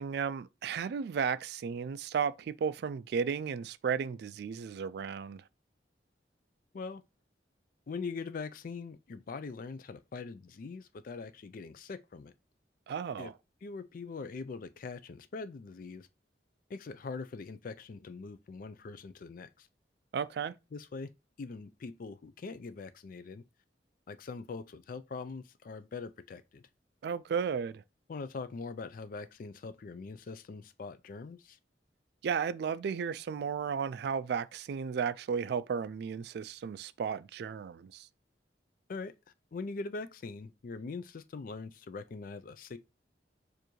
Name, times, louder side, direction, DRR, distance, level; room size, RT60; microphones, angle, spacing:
voice 1, 0.0-5.4 12.9-13.3 20.1-20.5 27.0-27.8 32.2-38.1, right 6 dB, 65° right, 0.3 m, -34 dB
voice 2, 7.9-12.3 13.2-13.3 13.6-16.1 16.7-19.7 20.7-21.1 21.4-23.4 24.1-26.6 28.1-31.6 38.9-39.1 39.5-42.8, left 4 dB, 50° left, 0.4 m, -42 dB
6.7 x 2.6 x 3.0 m
head